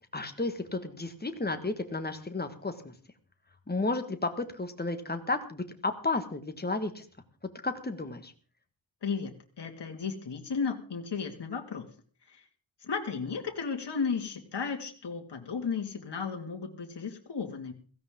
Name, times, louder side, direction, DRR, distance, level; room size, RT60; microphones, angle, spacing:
voice 1, 0.1-2.9 3.7-7.0 7.6-8.3, left 3 dB, 20° left, 7 dB, 1.7 m, -32 dB
voice 2, 9.0-11.9 12.3-12.4 12.8-17.7, left 5 dB, 60° left, 4 dB, 2.3 m, -34 dB
16.5 x 16.0 x 3.8 m, 0.41 s
wide cardioid pair, 145°, 46 cm